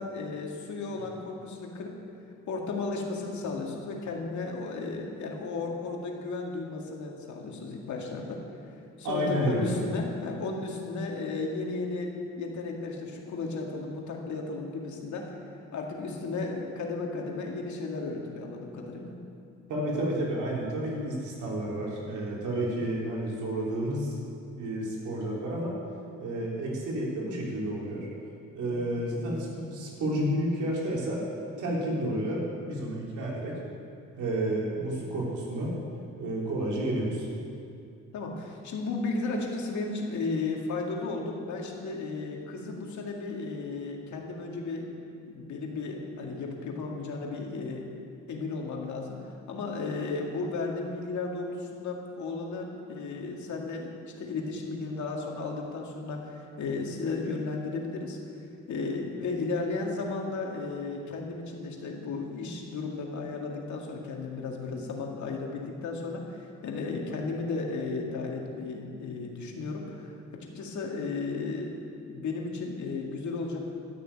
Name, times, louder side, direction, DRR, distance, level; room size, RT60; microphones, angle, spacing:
voice 1, 0.0-2.0 2.5-8.4 9.0-12.1 12.4-15.3 15.7-19.1 28.8-28.9 38.1-44.9 45.3-47.9 48.3-49.2 49.5-58.2 58.7-70.1 70.4-71.8 72.1-73.6, left 3 dB, 70° left, 0 dB, 2.2 m, -34 dB
voice 2, 9.0-9.8 19.7-24.2 24.6-25.8 26.2-28.1 28.5-31.3 31.6-33.6 34.1-35.8 36.2-37.3, right 1 dB, 80° right, -3 dB, 3.4 m, -30 dB
12.0 x 6.9 x 9.0 m, 2.4 s
cardioid pair, 90°, 30 cm